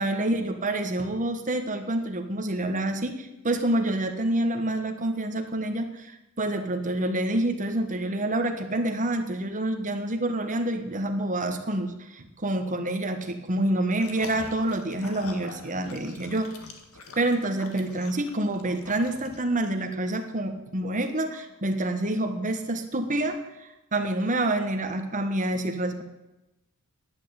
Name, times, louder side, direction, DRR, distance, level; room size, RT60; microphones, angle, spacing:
voice 1, 0.0-16.5 17.2-23.4 23.9-26.0, right 1 dB, 35° right, 6 dB, 1.4 m, -27 dB
sound 1, 13.9-19.6, left 3 dB, 80° left, 1.7 m, -45 dB
10.5 x 8.8 x 8.6 m, 0.96 s
head